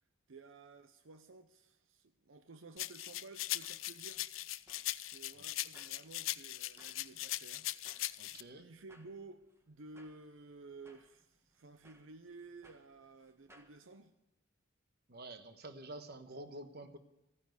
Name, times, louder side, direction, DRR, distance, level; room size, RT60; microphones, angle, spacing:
voice 1, 0.3-4.3 4.7-14.1, right 3 dB, 80° right, 0.7 m, -54 dB
sound 1, 2.8-8.4, left 15 dB, 85° left, 0.6 m, -40 dB
sound 2, 3.3-13.8, right 1 dB, 15° right, 1.5 m, -67 dB
voice 2, 8.2-8.6 15.1-17.0, right 1 dB, 55° right, 1.3 m, -48 dB
14.5 x 9.8 x 8.0 m
head